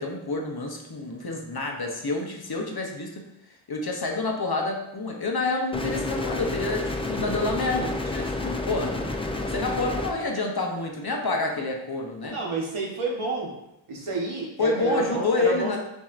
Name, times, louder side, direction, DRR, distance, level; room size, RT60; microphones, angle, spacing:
voice 1, 0.0-3.2 3.7-12.4 14.6-15.8, left 3 dB, 50° left, 2 dB, 0.8 m, -28 dB
sound 1, 5.7-10.1, left 2 dB, 10° left, 0.4 m, -30 dB
voice 2, 12.2-13.5 13.9-15.8, right 3 dB, 85° right, -2 dB, 1.1 m, -29 dB
7.2 x 2.7 x 2.5 m, 0.85 s
wide cardioid pair, 55°, 50 cm